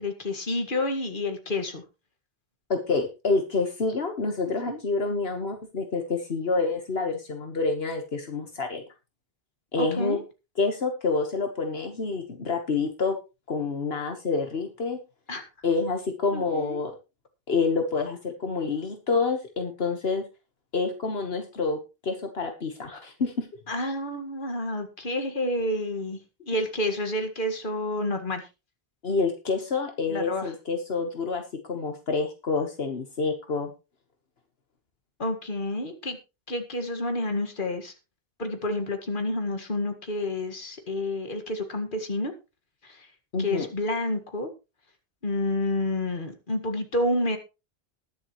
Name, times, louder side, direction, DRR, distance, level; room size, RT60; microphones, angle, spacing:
voice 1, 0.0-1.8 4.7-4.8 9.8-10.2 15.3-15.4 16.3-16.8 23.7-28.4 30.1-30.5 35.2-36.2 36.5-37.9 38.4-42.3 42.8-43.1 43.4-44.5 45.2-47.4, left 1 dB, 55° left, 6 dB, 2.0 m, -29 dB
voice 2, 2.7-8.8 9.7-10.2 10.6-13.2 13.5-15.0 15.6-16.9 17.5-20.2 20.7-23.5 29.0-31.4 31.7-33.7 43.3-43.7, left 4 dB, 70° left, 4 dB, 1.6 m, -28 dB
21.0 x 7.4 x 3.1 m, 0.29 s
omnidirectional pair, 1.1 m